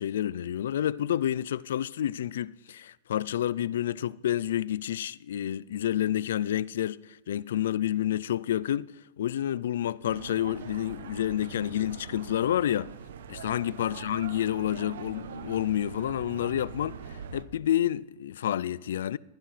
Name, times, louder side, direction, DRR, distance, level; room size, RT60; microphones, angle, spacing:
voice 1, 0.0-12.9 13.3-19.2, left 11 dB, 75° left, 0.4 m, -29 dB
sound 1, 10.0-17.4, right 7 dB, 75° right, 1.1 m, -43 dB
22.0 x 15.5 x 3.3 m
hypercardioid pair, 120°, 0 cm